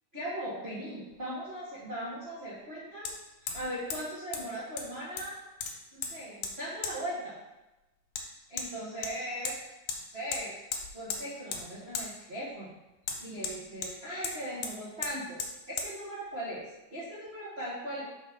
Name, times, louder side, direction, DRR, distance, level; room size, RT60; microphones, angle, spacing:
voice 1, 0.1-3.1 3.4-5.4 5.9-7.3 8.5-9.6 10.1-10.5 10.9-12.7 13.2-15.4 15.7-16.6 16.9-18.0, equal, 75° right, -9 dB, 0.5 m, -38 dB
Hammer, 1.1-1.2 3.1-3.2 3.5-3.7 3.9-4.0 4.3-4.4 4.8-5.3 5.6-6.1 6.4-6.5 6.8-7.0 8.2-8.3 8.6-8.7 9.0-9.6 9.9-10.0 10.3-10.4 10.7-11.2 11.5-11.6 11.9-12.1 13.0-13.9 14.2-14.4 14.6-14.7 15.0-15.1 15.4-15.5 15.8-15.9, left 5 dB, 75° left, 2.3 m, -35 dB
5.7 x 3.6 x 5.8 m, 1.0 s
omnidirectional pair, 3.8 m